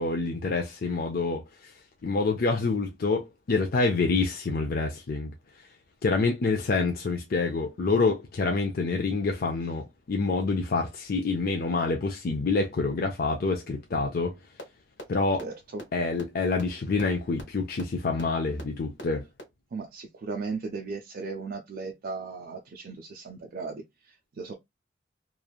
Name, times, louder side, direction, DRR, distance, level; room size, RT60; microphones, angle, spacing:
voice 1, 0.0-1.7 2.0-5.3 6.0-14.3 15.1-15.5 15.9-19.2, left 3 dB, 55° left, 0.5 m, -27 dB
sound 1, 14.6-14.7 15.0-15.1 15.4-15.5 15.8-15.9 16.2-16.3 16.6-16.7 17.0-17.1 17.4-17.5 17.8-17.9 18.2-18.3 18.6-18.7 19.0-19.1 19.4-19.5, equal, 70° left, 1.3 m, -39 dB
voice 2, 15.4-15.8 19.7-24.5, right 4 dB, 50° right, 0.4 m, -37 dB
3.1 x 2.5 x 2.3 m
head